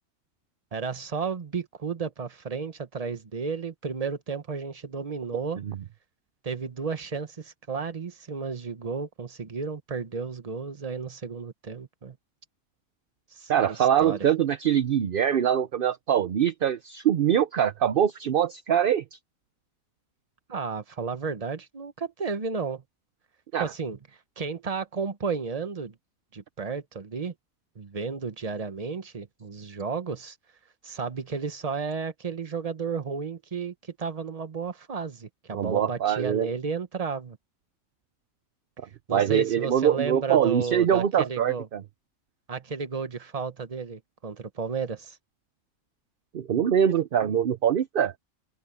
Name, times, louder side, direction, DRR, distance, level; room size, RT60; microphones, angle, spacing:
voice 1, 0.7-5.6 6.4-12.2 13.3-14.2 20.5-22.8 23.6-24.0 24.4-25.9 26.3-27.3 27.7-30.4 30.8-37.4 39.1-41.7 42.5-45.2, right 5 dB, 30° right, 1.0 m, -33 dB
voice 2, 13.5-19.0 23.5-23.7 35.5-36.5 39.1-41.8 46.3-48.1, right 9 dB, 55° right, 0.7 m, -23 dB
open air
omnidirectional pair, 1.5 m